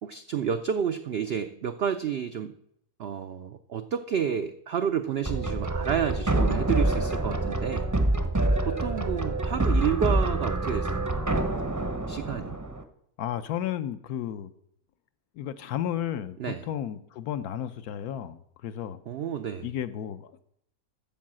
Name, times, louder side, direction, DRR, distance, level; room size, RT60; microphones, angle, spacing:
voice 1, 0.0-2.5 3.0-7.9 8.7-11.1 12.1-12.6 16.4-16.7 19.1-19.7, right 8 dB, 75° right, 9 dB, 0.5 m, -30 dB
sound 1, 5.2-12.8, right 2 dB, 20° right, 0.5 m, -26 dB
voice 2, 13.2-14.5 15.3-16.4 16.6-19.0 19.6-20.4, left 10 dB, 75° left, 11 dB, 1.2 m, -33 dB
13.0 x 4.7 x 7.5 m, 0.74 s
omnidirectional pair, 1.6 m